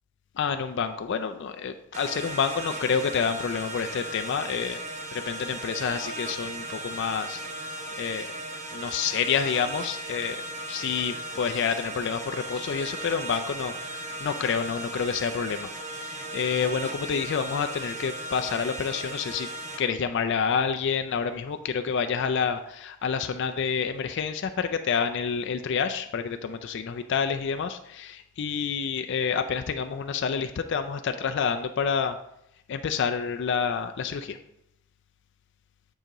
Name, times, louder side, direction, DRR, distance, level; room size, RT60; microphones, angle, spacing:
voice 1, 0.4-4.8 5.1-7.4 8.0-8.3 8.7-10.4 10.7-19.5 19.8-32.2 32.7-34.4, left 6 dB, 55° left, 8 dB, 0.4 m, -28 dB
sound 1, 1.9-19.8, right 1 dB, 35° right, 0.7 m, -37 dB
9.1 x 4.8 x 3.0 m, 0.79 s
head